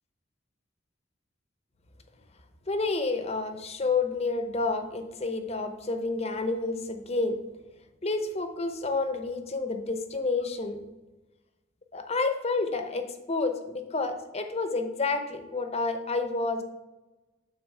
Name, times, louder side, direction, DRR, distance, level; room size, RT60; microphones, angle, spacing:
voice 1, 2.7-7.4 8.0-10.8 11.9-16.6, left 3 dB, 30° left, 7 dB, 0.8 m, -29 dB
8.2 x 3.9 x 6.6 m, 1.1 s
head